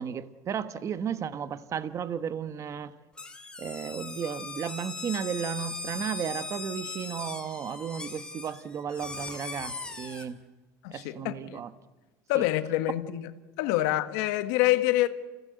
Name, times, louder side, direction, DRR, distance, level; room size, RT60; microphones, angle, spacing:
voice 1, 0.0-2.9 3.6-10.4 10.9-11.7 12.3-12.4 13.8-13.9, right 8 dB, 35° right, 1.1 m, -34 dB
sound 1, 3.2-10.3, left 3 dB, 10° left, 2.4 m, -39 dB
voice 2, 10.8-11.6 12.3-13.3 13.6-15.1, left 16 dB, 85° left, 1.7 m, -26 dB
29.0 x 16.5 x 8.1 m
cardioid pair, 140°, 9 cm